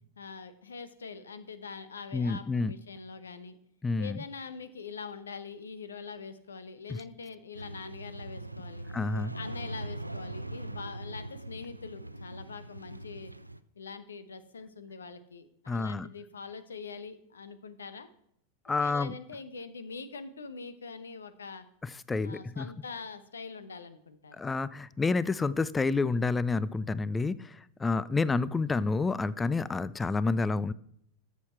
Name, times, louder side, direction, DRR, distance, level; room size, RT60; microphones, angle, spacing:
voice 1, 0.2-3.6 4.0-8.9 9.3-13.3 13.8-18.1 18.7-21.6 22.2-24.4, left 5 dB, 70° left, 13 dB, 0.8 m, -44 dB
voice 2, 2.1-2.7 3.8-4.2 6.9-7.0 8.9-9.3 15.7-16.1 18.7-19.1 21.8-22.7 24.4-30.7, left 3 dB, 15° left, 20 dB, 0.4 m, -29 dB
sound 1, 7.5-13.6, right 1 dB, 85° right, 0.4 m, -41 dB
12.5 x 7.2 x 4.4 m, 0.70 s
figure-of-eight pair, 90°, 0 cm